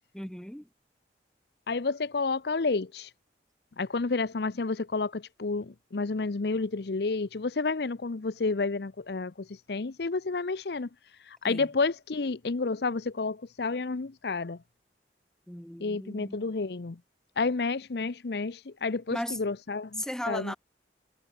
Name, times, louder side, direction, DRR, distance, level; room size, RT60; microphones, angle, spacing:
voice 1, 0.1-0.7 11.4-11.7 15.5-16.5 19.1-19.4 20.0-20.6, left 1 dB, 5° left, 0.8 m, -36 dB
voice 2, 1.7-3.1 3.8-10.9 11.3-14.6 15.8-17.0 17.4-20.6, left 3 dB, 65° left, 0.7 m, -30 dB
head